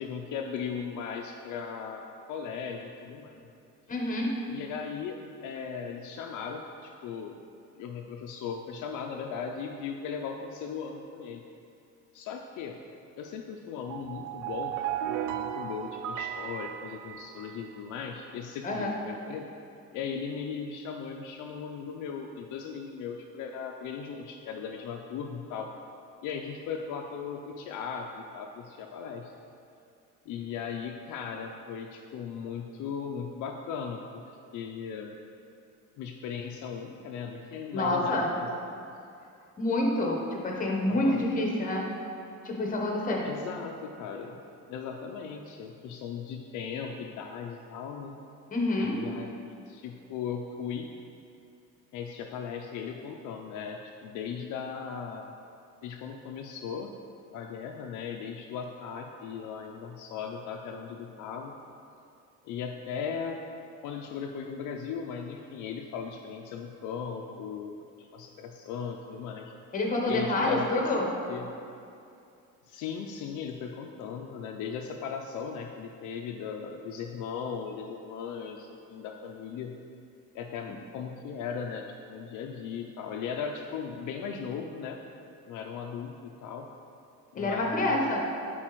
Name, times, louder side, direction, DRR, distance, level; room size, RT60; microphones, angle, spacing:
voice 1, 0.0-3.4 4.5-5.2 5.4-7.4 7.8-11.4 12.1-12.8 13.2-14.8 15.0-19.5 19.9-25.7 26.2-29.3 30.3-34.2 34.5-35.1 36.0-38.5 40.9-41.2 43.2-44.4 44.7-48.2 48.8-50.9 51.9-55.3 55.8-56.9 57.3-61.5 62.4-63.4 63.8-69.5 70.1-71.5 72.7-79.7 80.3-85.0 85.5-86.7 87.3-88.1, left 6 dB, 65° left, 2 dB, 0.5 m, -37 dB
voice 2, 3.9-4.3 18.6-18.9 37.7-38.3 39.6-41.9 42.4-43.3 48.5-49.0 69.7-71.1 87.3-88.2, left 1 dB, 25° left, 0 dB, 0.9 m, -27 dB
sound 1, 13.8-17.8, right 10 dB, 65° right, 0.4 m, -35 dB
8.8 x 4.1 x 3.0 m, 2.6 s
cardioid pair, 145°, 33 cm